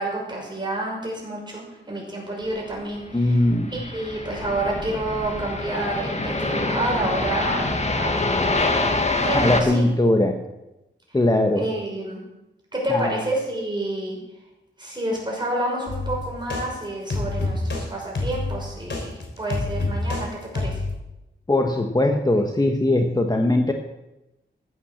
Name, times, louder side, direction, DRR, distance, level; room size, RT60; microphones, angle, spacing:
voice 1, 0.0-3.4 3.7-8.7 9.2-9.8 11.5-12.2 12.7-14.2 14.8-20.3 20.5-20.8, right 1 dB, 20° right, -2 dB, 6.0 m, -29 dB
sound 1, 3.0-9.6, left 2 dB, 35° left, 1.7 m, -25 dB
voice 2, 3.1-3.7 9.3-10.4 11.1-11.6 12.9-13.2 21.5-23.7, left 1 dB, 20° left, 3 dB, 1.2 m, -20 dB
sound 2, 15.9-16.6 17.1-17.8 18.1-20.2 20.5-20.9, left 2 dB, 65° left, 3.7 m, -27 dB
14.5 x 9.4 x 7.2 m, 0.95 s
wide cardioid pair, 115°, 20 cm